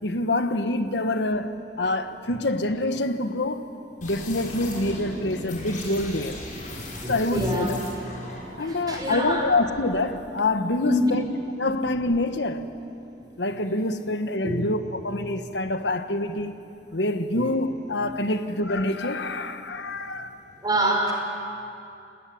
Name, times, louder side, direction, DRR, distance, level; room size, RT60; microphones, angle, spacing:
voice 1, 0.0-3.7 4.0-6.4 7.1-7.7 8.6-11.2 11.6-12.7 13.4-16.6 16.9-20.4, left 2 dB, 75° left, 1.3 m, -26 dB
sound 1, 4.0-10.2, left 1 dB, 45° left, 6.6 m, -38 dB
voice 2, 7.0-7.7 8.6-9.4 10.8-11.2 14.4-14.6 17.3-17.5 20.6-21.1, equal, 25° right, 5.3 m, -25 dB
29.0 x 19.0 x 9.5 m
head